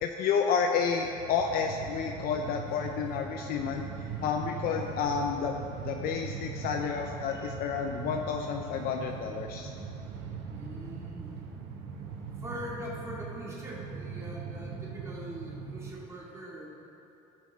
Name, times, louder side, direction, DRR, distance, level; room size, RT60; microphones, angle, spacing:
voice 1, 0.0-3.9 4.2-5.6 5.8-9.7, left 6 dB, 60° left, 3 dB, 0.6 m, -30 dB
Train, 0.7-15.9, right 5 dB, 70° right, 1.3 m, -40 dB
voice 2, 10.4-11.4 12.4-16.7, equal, 15° right, -5 dB, 2.4 m, -42 dB
14.5 x 5.9 x 3.7 m, 2.8 s
supercardioid pair, 110°, 18 cm